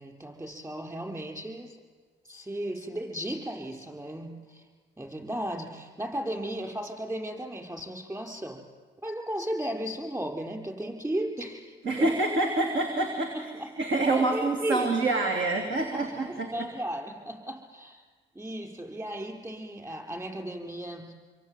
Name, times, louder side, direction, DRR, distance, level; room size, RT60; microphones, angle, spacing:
voice 1, 0.0-1.8 2.2-4.7 5.0-8.6 9.0-12.1 13.3-13.7 14.1-15.1 15.8-18.0 18.3-21.1, right 1 dB, 15° right, 3 dB, 5.7 m, -35 dB
voice 2, 11.8-13.5 13.8-16.5, right 2 dB, 70° right, 3 dB, 3.3 m, -26 dB
27.5 x 23.0 x 9.4 m, 1.5 s
cardioid pair, 90°, 20 cm